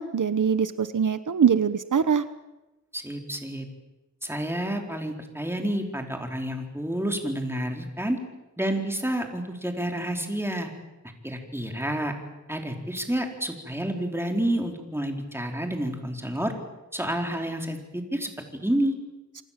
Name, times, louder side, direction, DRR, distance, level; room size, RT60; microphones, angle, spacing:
voice 1, 0.0-2.2, right 7 dB, 80° right, 12 dB, 1.1 m, -23 dB
voice 2, 2.9-3.7 4.2-8.2 8.6-10.7 11.2-12.1 12.5-16.5 16.9-18.3 18.6-18.9, right 1 dB, 10° right, 3 dB, 4.5 m, -29 dB
27.5 x 26.0 x 7.6 m, 1.0 s
wide cardioid pair, 90°, 30 cm